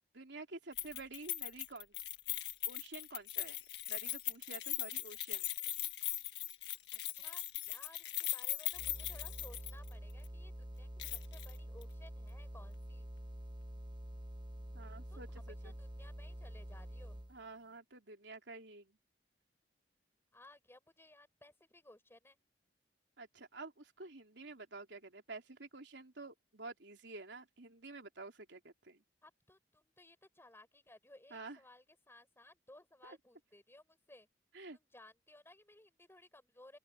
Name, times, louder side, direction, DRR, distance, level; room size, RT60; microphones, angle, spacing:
voice 1, 0.1-2.0 2.7-3.6 3.9-5.5 14.7-15.7 17.3-19.0 23.2-29.0 31.3-31.6 33.0-33.2 34.5-34.8, right 3 dB, 90° right, 3.4 m, -50 dB
Keys jangling, 0.8-9.9 10.2-10.3 11.0-11.5 11.8-11.9, left 15 dB, 70° left, 1.5 m, -40 dB
voice 2, 6.9-13.1 15.1-17.2 20.3-22.4 29.2-34.3 34.7-36.8, left 1 dB, 15° left, 4.2 m, -60 dB
sound 1, 8.7-17.4, equal, 25° right, 1.3 m, -47 dB
open air
head